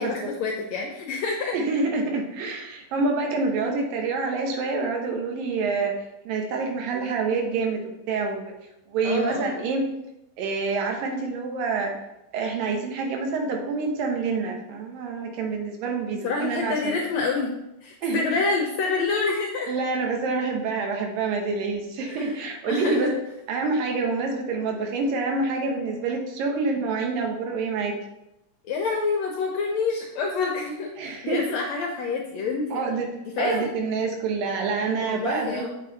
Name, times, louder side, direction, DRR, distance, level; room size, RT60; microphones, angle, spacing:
voice 1, 0.0-1.6 3.6-3.7 9.0-9.7 16.2-17.5 17.8-19.7 22.1-22.4 22.7-23.1 28.6-32.8 33.3-33.7 35.0-35.7, left 4 dB, 75° left, 1 dB, 1.7 m, -27 dB
voice 2, 1.5-5.9 6.3-8.5 8.9-9.9 10.4-11.9 12.3-17.0 18.0-18.2 19.7-23.1 23.5-28.0 31.0-31.4 32.7-33.1 33.4-35.7, right 4 dB, 85° right, 2 dB, 2.9 m, -27 dB
8.2 x 5.6 x 4.0 m, 0.89 s
omnidirectional pair, 3.9 m